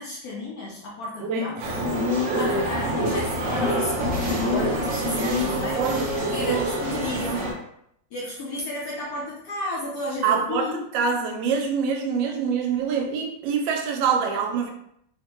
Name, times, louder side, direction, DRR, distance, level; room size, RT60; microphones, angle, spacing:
voice 1, 0.0-1.8 2.3-5.8 6.2-7.5 8.1-10.9, left 2 dB, 70° left, -3 dB, 0.9 m, -33 dB
voice 2, 1.2-1.8 2.5-3.1 5.0-5.3 5.7-7.4 10.2-14.7, right 6 dB, 80° right, 3 dB, 1.3 m, -26 dB
sound 1, 1.6-7.5, equal, 60° right, 0.9 m, -26 dB
3.4 x 2.1 x 2.9 m, 0.72 s
omnidirectional pair, 2.0 m